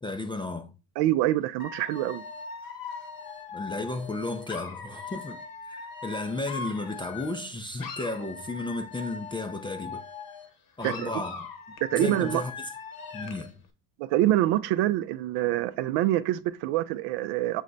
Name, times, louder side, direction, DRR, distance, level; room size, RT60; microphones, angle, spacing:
voice 1, 0.0-0.7 3.5-5.4 5.6-10.0 10.8-11.5 11.9-12.7 13.1-13.6, left 2 dB, 10° left, 0.3 m, -33 dB
voice 2, 1.0-2.2 10.8-11.1 11.8-12.4 14.0-17.6, right 14 dB, 65° right, 0.5 m, -25 dB
Dog / Alarm, 1.6-7.5 7.8-10.5 10.8-13.5, left 5 dB, 45° left, 1.0 m, -40 dB
6.3 x 2.1 x 3.9 m
hypercardioid pair, 75°, 46 cm